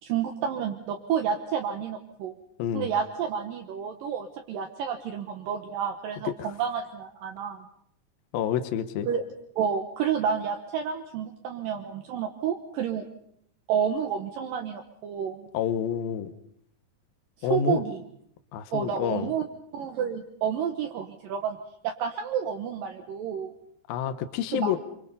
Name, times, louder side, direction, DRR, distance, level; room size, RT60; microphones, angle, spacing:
voice 1, 0.0-2.3 2.7-7.7 9.1-9.2 9.6-13.1 13.7-15.5 17.4-18.0 18.7-19.4 19.7-21.6 21.8-23.5 24.5-24.8, right 8 dB, 70° right, 4 dB, 2.6 m, -30 dB
voice 2, 2.6-2.9 6.2-6.5 8.3-9.1 15.5-16.3 17.4-17.8 18.5-19.3 23.9-24.8, left 9 dB, 75° left, 9 dB, 2.7 m, -28 dB
25.5 x 24.5 x 5.5 m, 0.71 s
omnidirectional pair, 4.5 m